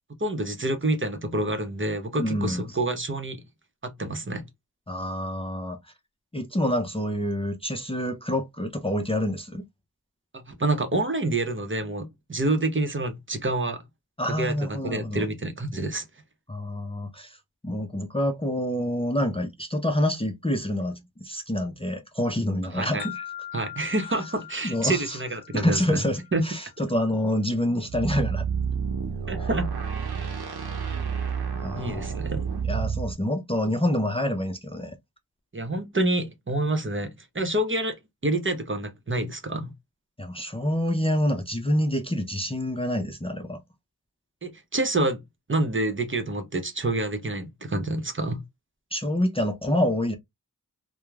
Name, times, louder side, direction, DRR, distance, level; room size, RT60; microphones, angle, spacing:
voice 1, 0.2-3.4 3.8-4.4 10.3-13.8 14.2-16.0 22.7-23.0 23.5-26.0 26.3-26.4 29.3-29.7 31.7-32.4 35.5-38.0 38.2-39.7 44.4-45.2 45.5-48.4, right 2 dB, 30° right, 0.8 m, -27 dB
voice 2, 2.2-2.6 4.9-5.8 6.3-9.6 14.2-15.2 16.5-17.4 17.6-23.2 24.6-25.2 25.5-28.5 29.4-29.5 31.6-32.0 32.7-35.0 40.2-43.6 48.9-50.1, left 1 dB, 15° left, 0.6 m, -27 dB
sound 1, 23.0-27.0, left 11 dB, 75° left, 0.5 m, -42 dB
sound 2, 27.9-33.1, right 6 dB, 80° right, 0.8 m, -30 dB
2.9 x 2.2 x 2.3 m
cardioid pair, 40°, 38 cm